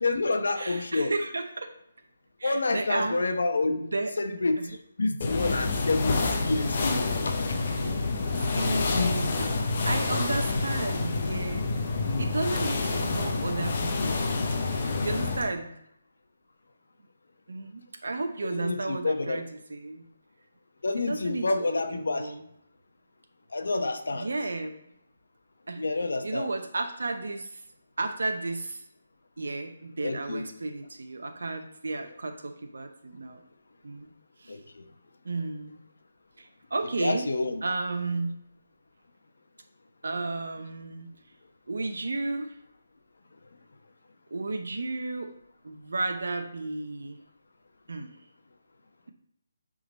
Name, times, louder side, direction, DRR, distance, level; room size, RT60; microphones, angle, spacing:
voice 1, 0.0-1.1 2.4-3.9 4.2-7.4 8.9-9.4 12.0-12.3 18.5-19.4 20.8-22.3 23.5-24.3 25.8-26.5 30.0-30.4 34.5-34.8 37.0-37.6, left 3 dB, 75° left, 7 dB, 0.9 m, -28 dB
voice 2, 0.6-1.7 2.4-3.2 3.8-4.1 4.6-4.7 7.7-7.8 8.3-11.7 12.2-14.3 15.0-15.7 17.5-20.0 21.1-22.4 24.1-24.7 25.7-25.8 26.2-27.6 28.0-28.8 29.4-33.4 33.8-34.1 34.4-34.6 35.2-35.8 36.4-37.3 37.6-38.4 40.0-41.1 41.7-42.6 44.3-45.3 45.6-47.2 47.9-48.1, right 3 dB, 75° right, 6 dB, 0.7 m, -33 dB
sound 1, 5.2-15.5, left 3 dB, 30° left, 0.8 m, -28 dB
9.3 x 3.9 x 4.0 m, 0.75 s
hypercardioid pair, 180°, 0 cm